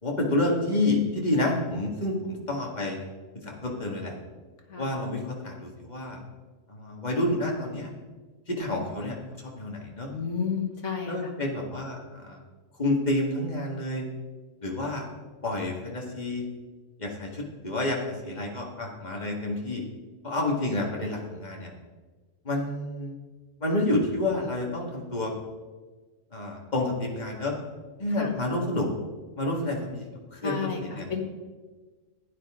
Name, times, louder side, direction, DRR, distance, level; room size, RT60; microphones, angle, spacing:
voice 1, 0.0-3.0 3.3-4.2 4.8-6.2 6.7-7.9 8.5-9.2 9.5-10.1 11.1-12.4 12.8-14.1 14.6-15.1 15.4-16.5 17.0-19.8 20.2-21.7 22.4-23.2 23.6-25.3 26.3-27.5 28.0-28.9 29.4-30.1 30.3-31.1, left 1 dB, 35° left, -1 dB, 2.1 m, -29 dB
voice 2, 10.1-11.2 28.2-28.3 30.4-30.8 31.1-31.2, left 6 dB, 70° left, 2 dB, 2.0 m, -30 dB
15.0 x 10.0 x 3.7 m, 1.3 s
omnidirectional pair, 1.3 m